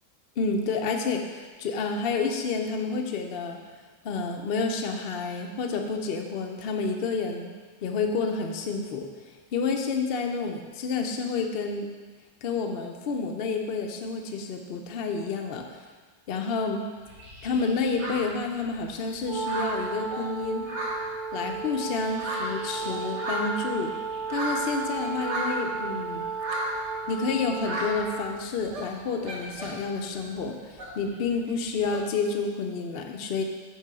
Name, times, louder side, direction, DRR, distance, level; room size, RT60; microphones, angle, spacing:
voice 1, 0.4-3.6 4.0-7.5 7.8-11.9 12.4-15.6 16.3-16.9 17.4-20.6 21.3-23.9 24.3-26.2 27.1-33.4, left 4 dB, 75° left, 3 dB, 0.5 m, -29 dB
sound 1, 17.0-18.9 19.2-21.6 21.9-25.8 26.2-26.9 27.6-28.3 28.6-30.0 30.2-32.0, right 1 dB, 90° right, 2.3 m, -35 dB
Wind instrument woodwind instrument, 19.2-28.4, right 4 dB, 50° right, 1.9 m, -34 dB
6.7 x 6.0 x 4.7 m, 1.5 s
omnidirectional pair, 1.7 m